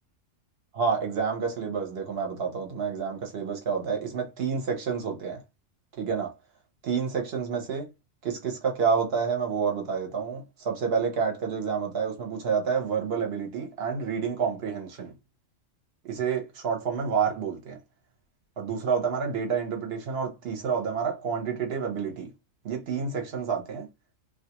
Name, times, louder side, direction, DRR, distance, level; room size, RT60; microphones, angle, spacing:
voice 1, 0.7-5.4 6.0-6.3 6.8-7.9 8.2-15.1 16.0-17.8 18.6-22.3 22.6-23.9, right 6 dB, 55° right, 0.8 m, -29 dB
2.3 x 2.3 x 2.8 m
omnidirectional pair, 1.4 m